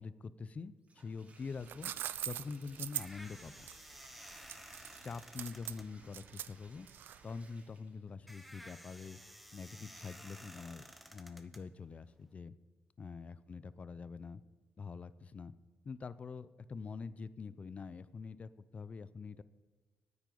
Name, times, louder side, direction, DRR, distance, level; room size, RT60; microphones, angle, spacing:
voice 1, 0.0-1.9 2.2-3.7 5.0-6.9 7.2-9.2 9.5-10.8 11.1-12.5 13.0-14.4 14.8-15.5 15.8-19.4, left 5 dB, 40° left, 16 dB, 0.6 m, -45 dB
Bathtub (filling or washing), 0.8-8.1, right 3 dB, 40° right, 2.8 m, -63 dB
sound 1, 1.4-7.4, right 11 dB, 75° right, 0.5 m, -43 dB
sound 2, 2.7-12.3, equal, ahead, 1.2 m, -55 dB
9.8 x 9.2 x 8.5 m, 1.4 s
cardioid pair, 95°, 4 cm